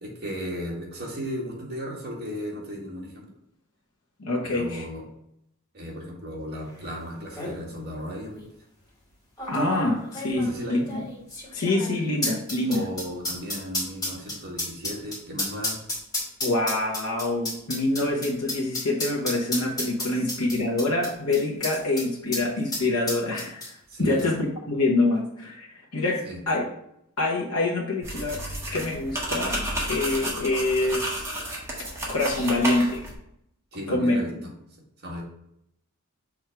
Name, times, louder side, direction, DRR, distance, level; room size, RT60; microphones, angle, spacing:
voice 1, 0.0-3.3 4.4-5.0 5.7-8.4 10.3-10.8 12.7-15.8 20.1-20.2 23.9-24.3 26.2-26.4 33.7-34.5 35.0-35.2, equal, 45° right, -2 dB, 1.9 m, -35 dB
voice 2, 4.2-4.8 9.5-11.0 11.5-12.8 16.4-23.6 24.0-26.7 27.2-28.4 28.7-31.3 31.8-33.0 33.9-34.2, left 2 dB, 85° left, -2 dB, 1.1 m, -26 dB
sound 1, 6.8-6.9 7.1-7.6 8.3-8.4 9.4-22.1 22.3-22.4 22.7-23.9 24.2-24.3, left 2 dB, 15° left, 2.1 m, -32 dB
sound 2, 28.0-33.1, right 1 dB, 10° right, 1.6 m, -31 dB
6.3 x 3.6 x 4.5 m, 0.74 s
head